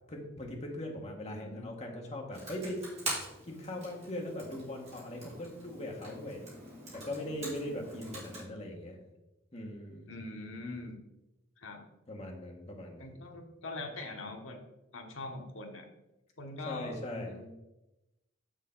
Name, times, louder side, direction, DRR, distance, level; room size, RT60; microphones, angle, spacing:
voice 1, 0.1-2.8 3.4-6.5 6.9-9.0 9.5-10.1 12.1-13.2 16.6-17.4, left 1 dB, 30° left, 0 dB, 1.3 m, -40 dB
voice 2, 1.2-1.7 10.1-10.9 11.6-11.8 13.0-14.6 14.9-15.9 16.4-17.5, left 2 dB, 70° left, 3 dB, 1.2 m, -43 dB
Computer keyboard, 2.3-8.4, right 2 dB, 30° right, 2.8 m, -43 dB
7.2 x 6.6 x 3.8 m, 0.96 s
head